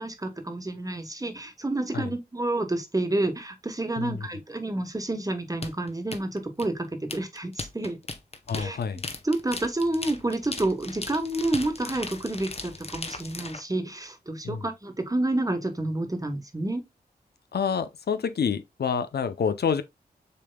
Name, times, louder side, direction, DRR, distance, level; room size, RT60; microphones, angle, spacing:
voice 1, 0.0-8.0 8.5-8.8 9.2-16.8, right 2 dB, 20° right, 1.2 m, -29 dB
voice 2, 4.0-4.3 8.5-9.0 14.4-14.6 17.5-19.8, left 6 dB, 70° left, 0.5 m, -28 dB
sound 1, 5.6-13.6, left 3 dB, 35° left, 0.9 m, -37 dB
6.6 x 3.4 x 2.2 m
cardioid pair, 50°, 17 cm